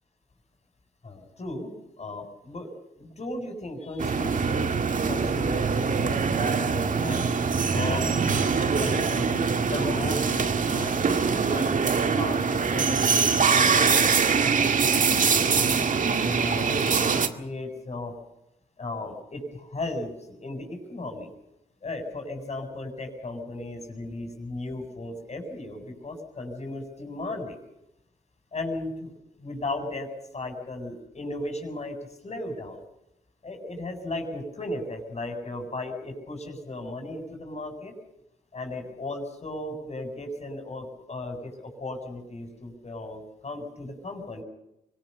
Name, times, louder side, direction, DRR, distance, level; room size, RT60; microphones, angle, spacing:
voice 1, 1.0-1.7 2.0-2.7 3.0-7.2 7.7-9.3 9.7-11.1 11.5-11.7 12.1-13.0 13.3-18.1 18.8-21.3 21.8-27.6 28.5-29.1 29.4-30.1 30.3-32.0 32.2-32.8 33.4-37.9 38.5-44.4, left 2 dB, 40° left, 5 dB, 7.9 m, -36 dB
sound 1, 4.0-17.3, right 5 dB, 45° right, 2.0 m, -23 dB
24.5 x 19.0 x 6.9 m, 0.84 s
supercardioid pair, 55°, 18 cm